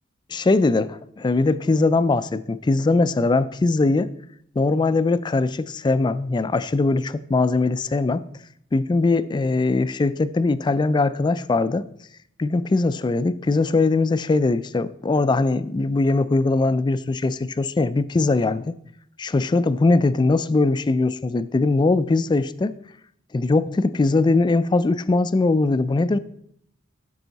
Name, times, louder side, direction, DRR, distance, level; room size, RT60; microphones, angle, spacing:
voice 1, 0.3-4.1 4.6-8.3 8.7-11.9 12.4-18.8 19.2-22.7 23.3-26.2, left 3 dB, 20° left, 15 dB, 0.3 m, -21 dB
12.5 x 5.4 x 4.0 m, 0.70 s
head